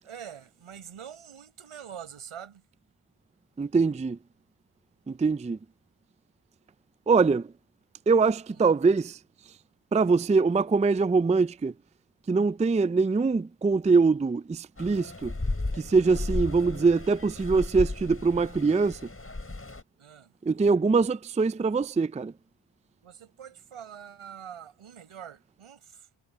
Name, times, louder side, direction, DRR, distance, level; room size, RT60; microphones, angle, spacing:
voice 1, 0.0-2.6 8.5-8.8 20.0-20.3 23.0-26.1, right 8 dB, 80° right, 7.7 m, -45 dB
voice 2, 3.6-4.2 5.1-5.6 7.1-7.5 8.1-9.2 9.9-11.7 12.3-15.3 15.8-19.0 20.4-22.3, right 4 dB, 15° right, 0.4 m, -23 dB
sound 1, 14.8-19.8, left 2 dB, 25° left, 7.0 m, -34 dB
cardioid pair, 50°, 49 cm